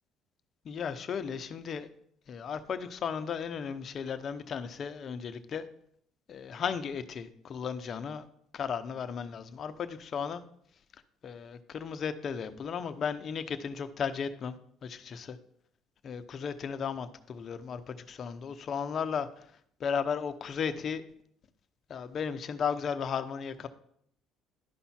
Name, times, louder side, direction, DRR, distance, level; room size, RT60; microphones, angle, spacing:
voice 1, 0.6-1.9 2.3-5.6 6.3-8.2 8.5-10.4 11.2-14.6 14.8-15.4 16.0-19.4 19.8-21.0 21.9-23.7, left 6 dB, 50° left, 11 dB, 0.8 m, -35 dB
11.5 x 5.7 x 4.3 m, 0.67 s
supercardioid pair, 85°, 0 cm